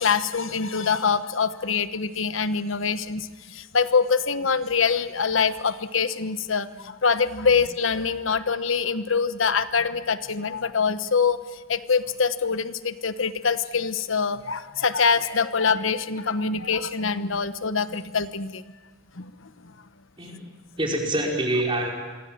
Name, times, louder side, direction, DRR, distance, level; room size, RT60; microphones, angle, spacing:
voice 1, 0.0-11.4 11.7-18.6 19.2-19.3, left 5 dB, 75° left, 12 dB, 1.1 m, -24 dB
voice 2, 20.2-20.5 20.8-21.9, right 1 dB, 25° right, 0 dB, 4.8 m, -26 dB
27.5 x 24.0 x 7.5 m, 1.3 s
head